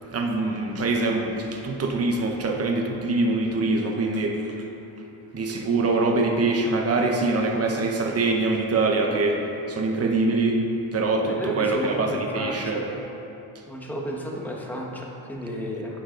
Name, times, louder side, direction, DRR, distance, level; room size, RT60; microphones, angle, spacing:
voice 1, 0.0-4.4 5.3-10.6 10.9-12.8, right 3 dB, 30° right, 2 dB, 0.8 m, -24 dB
voice 2, 11.3-12.9 13.7-16.0, equal, 5° left, -2 dB, 1.2 m, -32 dB
10.0 x 8.0 x 3.8 m, 2.9 s
cardioid pair, 125°, 46 cm